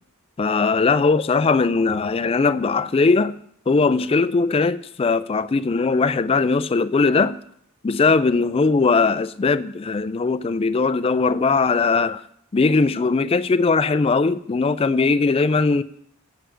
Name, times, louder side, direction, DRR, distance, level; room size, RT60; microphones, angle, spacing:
voice 1, 0.4-3.3 3.7-7.4 7.8-12.2 12.5-15.8, left 4 dB, 25° left, 0.3 m, -19 dB
8.0 x 6.3 x 7.9 m
head